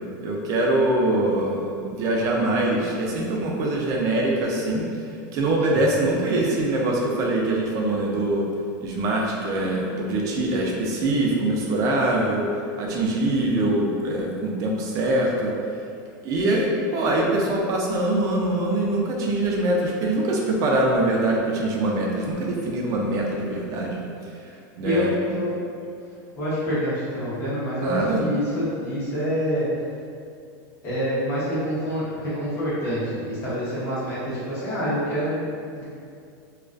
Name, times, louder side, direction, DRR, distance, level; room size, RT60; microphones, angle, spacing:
voice 1, 0.2-4.8 5.3-8.4 8.8-12.4 12.8-15.5 16.2-24.0 24.8-25.1 27.8-28.2, right 1 dB, 30° right, -1 dB, 0.3 m, -23 dB
voice 2, 24.8-25.5 26.4-29.7 30.8-35.8, equal, 20° left, -11 dB, 0.6 m, -26 dB
2.3 x 2.3 x 2.4 m, 2.4 s
supercardioid pair, 160°, 11 cm